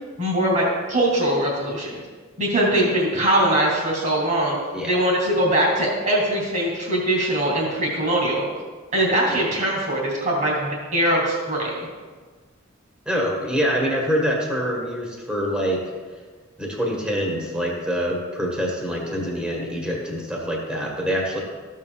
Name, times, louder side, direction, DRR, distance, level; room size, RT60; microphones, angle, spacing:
voice 1, 0.2-2.0 2.4-4.6 4.9-8.4 8.9-11.9, right 1 dB, 35° right, -2 dB, 2.0 m, -21 dB
voice 2, 13.0-15.8 16.6-21.4, equal, 5° right, -2 dB, 1.3 m, -25 dB
13.5 x 7.4 x 2.3 m, 1.5 s
head